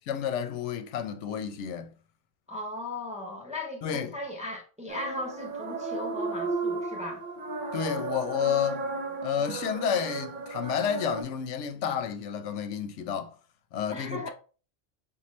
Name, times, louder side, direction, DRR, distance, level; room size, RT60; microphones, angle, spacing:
voice 1, 0.1-1.9 3.8-4.1 7.7-8.9 9.2-13.4 13.7-14.3, left 8 dB, 85° left, 0.9 m, -30 dB
voice 2, 2.5-7.2 13.9-14.3, left 1 dB, 10° right, 0.5 m, -37 dB
sound 1, 4.9-11.2, right 3 dB, 50° right, 0.8 m, -34 dB
5.5 x 2.2 x 3.0 m
omnidirectional pair, 1.2 m